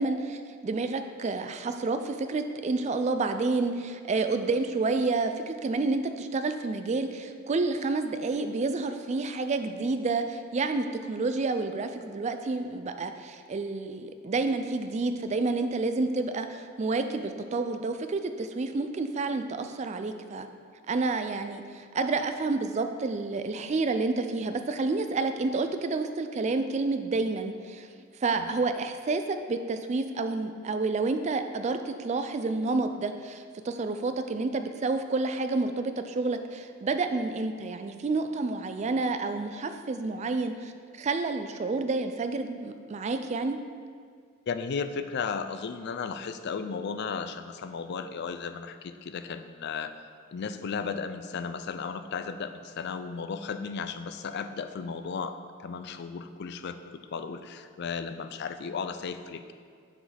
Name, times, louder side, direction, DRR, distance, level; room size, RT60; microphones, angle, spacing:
voice 1, 0.0-20.5 20.9-27.9 28.2-40.7 41.0-43.6, right 3 dB, 35° right, 8 dB, 0.3 m, -29 dB
voice 2, 44.5-49.9 50.3-59.5, left 5 dB, 50° left, 10 dB, 0.4 m, -35 dB
7.2 x 6.2 x 3.4 m, 2.1 s
head